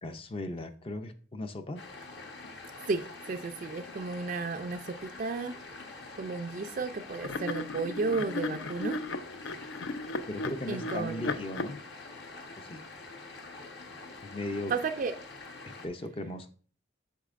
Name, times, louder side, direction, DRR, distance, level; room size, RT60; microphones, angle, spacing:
voice 1, 0.0-1.8 10.3-11.8 12.6-12.8 14.2-14.7 15.6-16.5, left 1 dB, 30° left, 0.4 m, -37 dB
sound 1, 1.8-15.9, left 3 dB, 55° left, 1.1 m, -46 dB
voice 2, 2.9-5.6 6.2-9.0 10.7-11.2 14.7-15.1, right 4 dB, 45° right, 0.3 m, -33 dB
sound 2, 6.7-6.8 7.2-11.7, left 3 dB, 80° left, 0.5 m, -36 dB
8.2 x 6.2 x 2.5 m
head